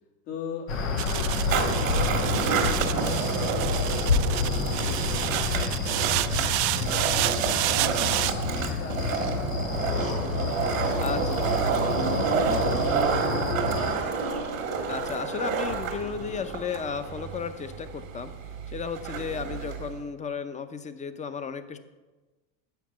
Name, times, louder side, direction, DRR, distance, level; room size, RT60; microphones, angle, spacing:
voice 1, 0.3-3.9 4.2-5.3 5.7-7.5 8.7-10.0 10.5-10.9 11.2-14.0, left 5 dB, 75° left, -2 dB, 2.7 m, -43 dB
sound 1, 0.7-13.9, left 4 dB, 90° left, 1.5 m, -29 dB
sound 2, 1.0-8.3, right 18 dB, 60° right, 0.5 m, -30 dB
Skateboard, 1.4-20.0, right 5 dB, 90° right, 1.6 m, -29 dB
voice 2, 11.0-11.5 14.9-18.3 18.7-21.8, left 6 dB, 20° left, 11 dB, 0.6 m, -34 dB
7.7 x 5.9 x 7.5 m, 1.2 s
supercardioid pair, 100°, 39 cm